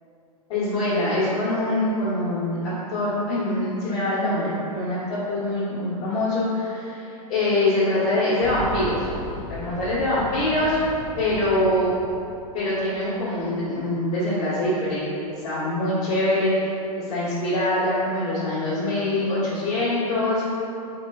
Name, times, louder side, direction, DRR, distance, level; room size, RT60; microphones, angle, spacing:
voice 1, 0.5-9.1 9.5-10.8 11.2-11.9 12.5-15.1 15.4-20.5, left 1 dB, 55° left, -11 dB, 1.0 m, -24 dB
Boom, 8.4-13.2 13.4-13.5 14.6-14.7, right 1 dB, 15° right, 0.8 m, -37 dB
3.1 x 3.0 x 2.2 m, 2.7 s
hypercardioid pair, 115°, 20 cm